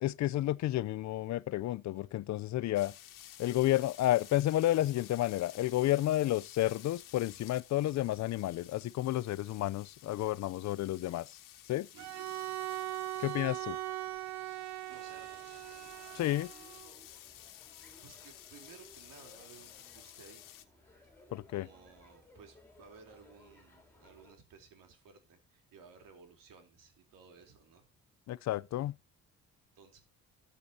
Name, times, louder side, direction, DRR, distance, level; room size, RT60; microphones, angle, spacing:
voice 1, 0.0-2.9 3.4-11.3 11.7-11.9 13.2-13.8 16.1-16.5 21.3-21.7 28.3-28.9, left 14 dB, 60° left, 0.5 m, -31 dB
sound 1, 2.7-20.6, left 13 dB, 80° left, 1.5 m, -54 dB
Bowed string instrument, 12.0-16.9, right 15 dB, 60° right, 0.8 m, -40 dB
sound 2, 14.9-24.3, left 2 dB, 5° left, 4.7 m, -61 dB
voice 2, 14.9-15.7 18.0-20.4 21.0-21.1 21.5-27.8 29.8-30.0, right 5 dB, 90° right, 3.7 m, -57 dB
14.0 x 8.2 x 2.8 m
cardioid pair, 170°, 32 cm